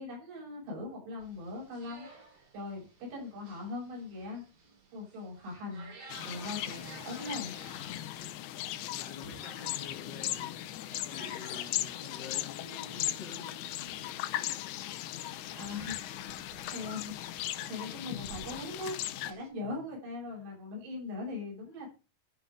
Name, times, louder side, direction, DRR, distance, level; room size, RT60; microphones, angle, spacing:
voice 1, 0.0-2.1 2.5-2.8 3.1-4.4 4.9-5.9 6.2-7.6 15.1-16.0 16.7-22.0, left 3 dB, 80° right, 8.4 m, -40 dB
sound 1, 1.2-19.5, right 3 dB, 60° right, 5.5 m, -55 dB
sound 2, 6.1-19.3, left 14 dB, 80° left, 2.5 m, -38 dB
voice 2, 7.9-14.6 14.9-16.5 19.6-19.8 20.3-20.5, left 5 dB, 50° left, 1.3 m, -50 dB
13.5 x 4.7 x 5.1 m
omnidirectional pair, 4.7 m